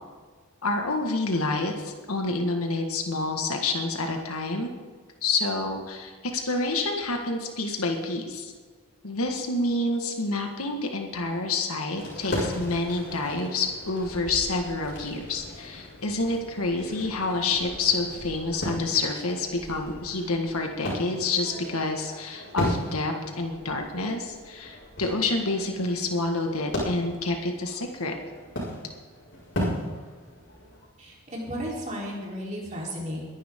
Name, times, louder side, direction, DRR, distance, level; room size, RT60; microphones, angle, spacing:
voice 1, 0.6-4.7 5.2-8.5 9.0-28.2, left 3 dB, 85° left, 3 dB, 1.7 m, -28 dB
sound 1, 12.0-30.9, left 1 dB, 55° left, 5.2 m, -36 dB
voice 2, 31.0-33.2, equal, 35° right, -3 dB, 3.7 m, -34 dB
22.5 x 11.0 x 3.7 m, 1.5 s
head